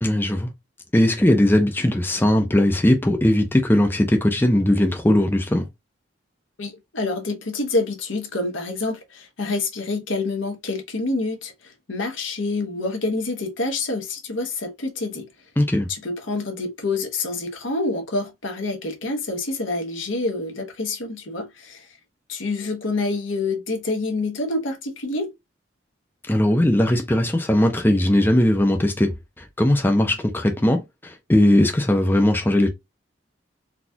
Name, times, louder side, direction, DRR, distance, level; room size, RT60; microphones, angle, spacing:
voice 1, 0.0-0.5 0.9-5.7 15.6-15.9 26.3-32.7, left 1 dB, 10° left, 0.5 m, -19 dB
voice 2, 6.6-15.3 15.9-21.9 22.3-25.3, left 2 dB, 85° left, 1.1 m, -27 dB
4.0 x 2.4 x 2.8 m
head